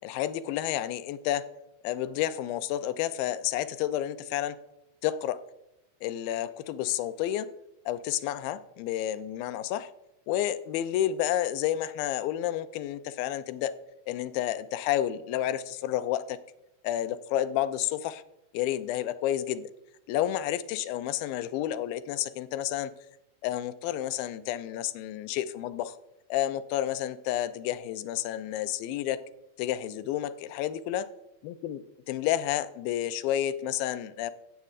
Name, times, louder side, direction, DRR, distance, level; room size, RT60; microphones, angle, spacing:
voice 1, 0.0-1.4 1.8-4.6 5.0-5.4 6.0-7.5 7.9-9.9 10.3-13.7 14.1-16.4 16.8-18.2 18.5-19.7 20.1-22.9 23.4-26.0 26.3-29.2 29.6-31.1 31.4-31.8 32.1-34.3, left 12 dB, 80° left, 12 dB, 2.3 m, -30 dB
16.0 x 8.0 x 2.4 m, 0.85 s
omnidirectional pair, 4.3 m